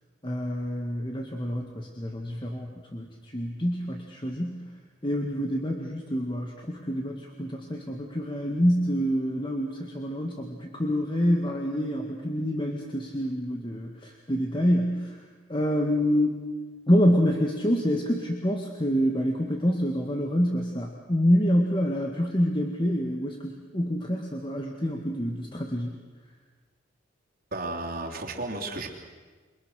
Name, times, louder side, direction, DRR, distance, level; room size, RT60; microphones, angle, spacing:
voice 1, 0.2-4.6 5.0-15.2 15.5-16.4 16.9-26.0, equal, 25° left, 1 dB, 1.8 m, -27 dB
voice 2, 27.5-28.9, right 2 dB, 45° right, 0 dB, 3.2 m, -33 dB
29.0 x 23.5 x 6.5 m, 1.4 s
head